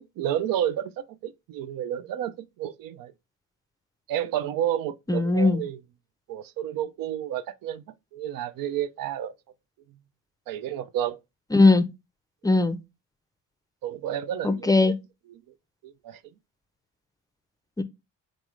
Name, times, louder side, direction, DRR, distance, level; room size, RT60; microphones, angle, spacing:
voice 1, 0.0-3.1 4.1-5.8 6.3-7.8 8.1-9.3 10.5-11.2 13.8-14.9 15.3-15.4 15.8-16.2, right 10 dB, 80° right, 0.5 m, -31 dB
voice 2, 5.1-5.6 11.5-11.9 12.4-12.8 14.4-15.0 17.8-17.9, left 3 dB, 10° left, 0.4 m, -19 dB
3.9 x 3.6 x 3.0 m
cardioid pair, 75°, 33 cm